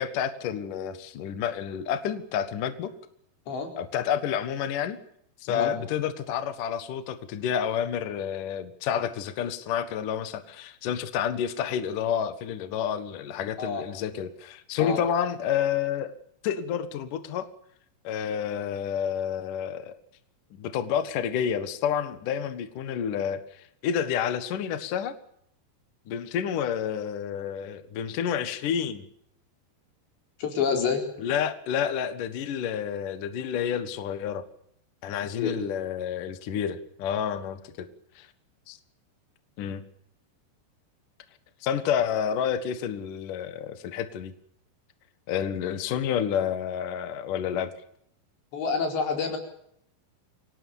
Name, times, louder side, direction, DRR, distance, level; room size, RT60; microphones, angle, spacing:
voice 1, 0.0-2.9 3.8-5.0 5.4-16.1 16.4-17.5 18.0-20.0 20.6-25.1 26.1-29.1 31.2-34.4 35.0-37.9 38.2-38.3 38.7-38.8 39.6-39.8 41.6-44.3 45.3-47.7, left 8 dB, 60° left, 10 dB, 2.7 m, -29 dB
voice 2, 30.4-31.0 35.4-35.6 48.5-49.4, left 5 dB, 80° left, 3 dB, 6.7 m, -27 dB
27.5 x 18.5 x 7.1 m, 0.70 s
omnidirectional pair, 5.0 m